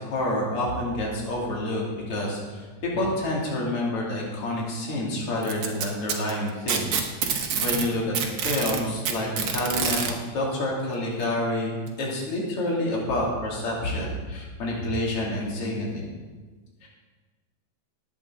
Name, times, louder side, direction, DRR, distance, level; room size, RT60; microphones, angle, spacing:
voice 1, 0.0-2.6 2.9-16.1 16.8-16.9, left 1 dB, 50° left, -4 dB, 3.4 m, -28 dB
Packing tape duct tape, 5.4-7.9 8.1-10.1 11.2-11.3 11.9-12.0 12.8-12.9, right 7 dB, 60° right, 1.8 m, -26 dB
18.5 x 8.7 x 3.8 m, 1.4 s
omnidirectional pair, 3.4 m